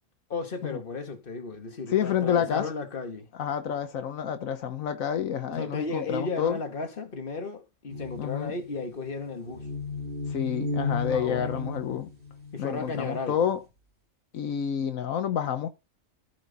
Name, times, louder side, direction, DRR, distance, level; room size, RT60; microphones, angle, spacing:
voice 1, 0.3-3.3 5.5-9.7 11.1-11.7 12.5-13.4, left 4 dB, 40° left, 1.7 m, -34 dB
voice 2, 1.9-2.7 3.4-6.6 8.2-8.5 10.3-12.1 12.6-13.6 14.3-15.7, left 8 dB, 80° left, 1.3 m, -29 dB
sound 1, 7.9-13.1, left 3 dB, 40° right, 2.5 m, -34 dB
14.0 x 5.0 x 4.0 m
omnidirectional pair, 1.4 m